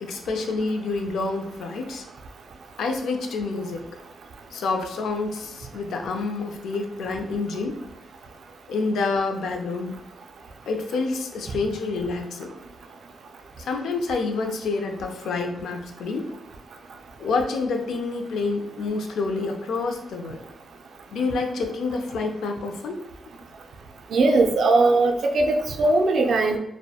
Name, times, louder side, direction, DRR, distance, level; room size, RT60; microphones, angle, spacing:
voice 1, 0.0-2.1 2.8-3.8 4.5-7.8 8.7-10.0 10.7-12.5 13.6-16.3 17.2-20.4 21.1-23.0, left 3 dB, 85° left, 4 dB, 0.3 m, -28 dB
voice 2, 24.1-26.6, right 2 dB, 70° right, 4 dB, 0.3 m, -19 dB
2.7 x 2.1 x 2.3 m, 0.84 s
cardioid pair, 95°, 0 cm